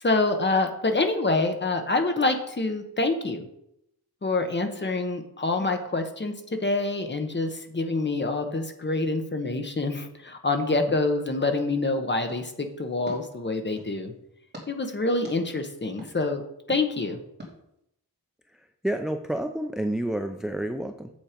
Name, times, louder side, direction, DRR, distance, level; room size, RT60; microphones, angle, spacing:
voice 1, 0.0-3.5 4.2-6.3 6.6-14.1 14.7-16.4 16.7-17.2, left 3 dB, 30° left, 6 dB, 1.0 m, -26 dB
sound 1, 12.3-14.0 14.5-14.7 15.2-15.4 16.0-16.1 16.7-16.8 17.4-17.5, equal, 25° right, 2.7 m, -44 dB
voice 2, 18.5-21.1, right 1 dB, ahead, 6 dB, 0.4 m, -30 dB
7.4 x 7.3 x 5.1 m, 0.80 s
wide cardioid pair, 145°, 39 cm